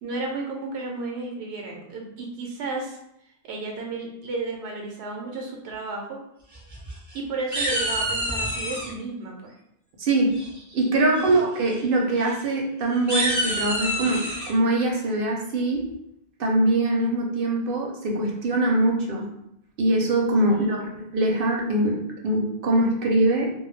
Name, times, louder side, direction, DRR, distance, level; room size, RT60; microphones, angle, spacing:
voice 1, 0.0-3.0 3.4-6.2 7.1-9.5 11.0-11.4 20.5-20.9, right 3 dB, 90° right, 0 dB, 0.9 m, -33 dB
sound 1, 6.5-7.1 7.5-8.9 10.3-10.7 11.1-11.4 11.7-11.8 12.2-12.3 12.9-14.5, right 1 dB, 30° right, 0.3 m, -27 dB
voice 2, 10.0-10.4 10.7-15.9 16.4-19.3 19.8-23.5, right 1 dB, 65° right, 0 dB, 0.7 m, -23 dB
2.2 x 2.1 x 3.1 m, 0.79 s
omnidirectional pair, 1.1 m